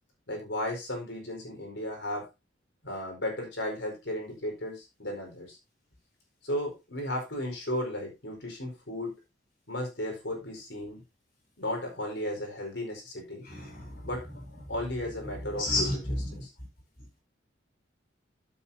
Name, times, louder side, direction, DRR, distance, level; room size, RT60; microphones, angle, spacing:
voice 1, 0.3-2.3 2.8-5.6 6.4-9.2 9.7-11.0 11.6-13.5 14.0-14.3 14.7-16.0 16.3-16.5, left 1 dB, 80° left, 4.6 m, -35 dB
voice 2, 13.4-14.0 15.6-16.4, left 1 dB, 50° left, 4.9 m, -31 dB
12.5 x 8.0 x 2.7 m
head